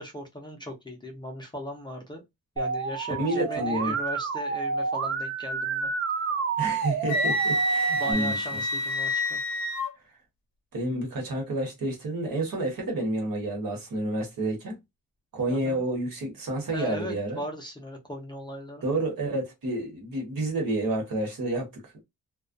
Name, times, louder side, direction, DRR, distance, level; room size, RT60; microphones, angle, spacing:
voice 1, 0.0-2.2 2.6-5.9 8.0-9.4 15.5-15.8 16.7-18.8, equal, 15° left, 0.5 m, -38 dB
Musical instrument, 2.6-8.1, right 5 dB, 40° right, 0.4 m, -29 dB
voice 2, 3.2-3.9 6.6-8.4 10.7-14.8 15.3-17.4 18.8-22.0, right 1 dB, 75° right, 1.2 m, -29 dB
Wind instrument woodwind instrument, 7.1-9.9, equal, 75° left, 0.8 m, -27 dB
2.3 x 2.2 x 2.5 m
wide cardioid pair, 155°, 35 cm